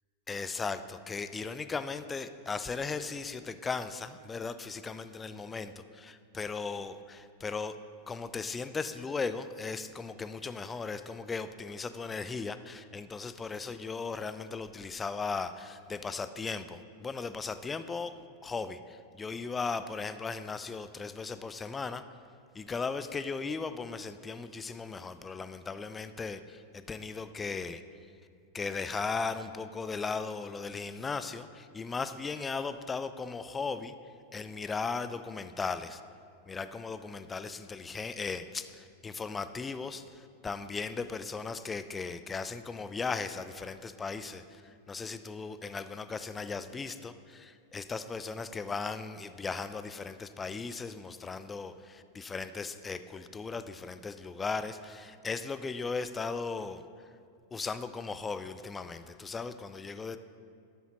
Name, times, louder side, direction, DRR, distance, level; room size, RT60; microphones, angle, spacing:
voice 1, 0.3-7.7 8.1-18.1 18.4-22.0 22.5-27.8 28.5-33.9 34.3-36.0 36.5-56.8 57.5-60.2, left 4 dB, 20° left, 11 dB, 0.4 m, -37 dB
12.0 x 7.1 x 3.0 m, 2.3 s
hypercardioid pair, 95°, 0 cm